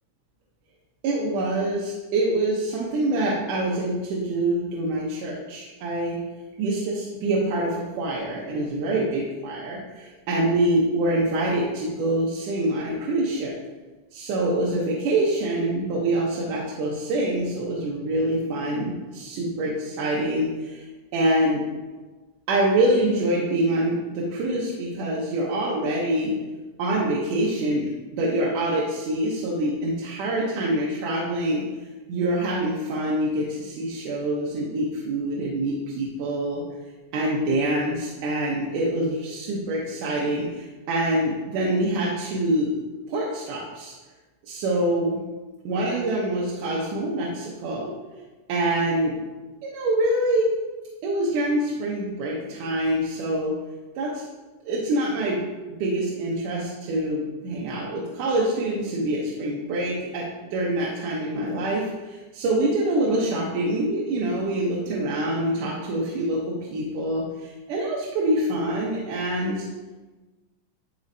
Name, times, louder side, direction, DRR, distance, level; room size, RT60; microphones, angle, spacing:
voice 1, 1.0-6.2 6.6-13.5 14.1-20.8 21.1-21.6 22.5-26.4 26.8-31.6 32.1-36.6 37.1-42.7 43.1-43.9 44.4-45.2 45.7-47.9 48.5-49.2 49.6-50.5 51.0-53.5 54.0-54.2 54.7-55.4 55.8-60.2 60.5-69.7, right 1 dB, 75° right, -5 dB, 2.4 m, -25 dB
12.5 x 4.2 x 2.7 m, 1.2 s
omnidirectional pair, 3.8 m